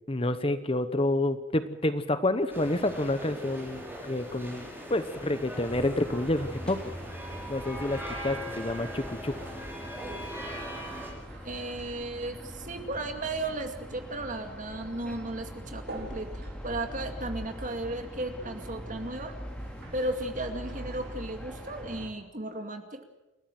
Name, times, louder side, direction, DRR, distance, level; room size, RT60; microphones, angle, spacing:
voice 1, 0.1-6.8 7.5-9.3, left 1 dB, 30° left, 11 dB, 1.0 m, -29 dB
sound 1, 2.5-11.1, equal, 10° right, 5.6 m, -40 dB
sound 2, 2.9-21.8, right 2 dB, 55° right, 4.5 m, -53 dB
sound 3, 5.6-22.1, equal, 5° left, 3.5 m, -42 dB
voice 2, 11.4-19.4 19.9-23.0, right 2 dB, 40° right, 6 dB, 2.3 m, -35 dB
29.0 x 13.5 x 7.6 m, 1.0 s
head